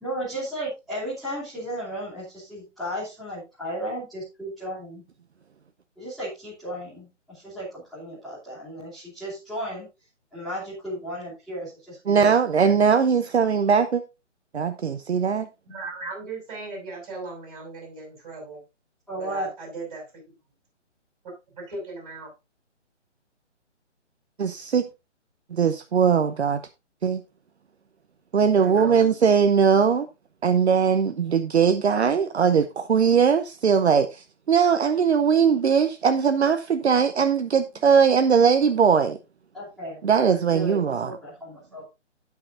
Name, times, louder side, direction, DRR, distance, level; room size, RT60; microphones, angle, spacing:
voice 1, 0.0-5.0 6.0-9.9 10.3-12.3 19.1-19.5 39.5-40.2 40.5-41.9, equal, ahead, 2.9 m, -34 dB
voice 2, 12.1-14.0 14.5-15.5 24.4-24.9 25.5-26.6 27.0-27.2 28.3-30.1 30.4-39.2 40.0-41.2, right 6 dB, 60° right, 0.9 m, -20 dB
voice 3, 15.7-18.6 19.1-20.3 21.5-22.3 28.5-29.1, right 3 dB, 30° right, 6.5 m, -37 dB
17.5 x 5.9 x 2.6 m
hypercardioid pair, 165°, 36 cm